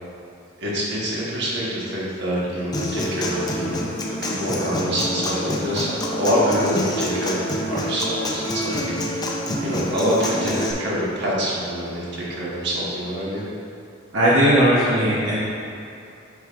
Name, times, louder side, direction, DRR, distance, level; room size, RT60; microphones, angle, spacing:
voice 1, 0.6-9.3 9.6-13.5, equal, 60° right, -7 dB, 1.4 m, -26 dB
Human voice / Acoustic guitar, 2.7-10.7, left 1 dB, 20° left, 0.5 m, -27 dB
voice 2, 14.1-15.4, equal, 80° right, -8 dB, 0.9 m, -17 dB
7.8 x 5.3 x 2.5 m, 2.7 s
head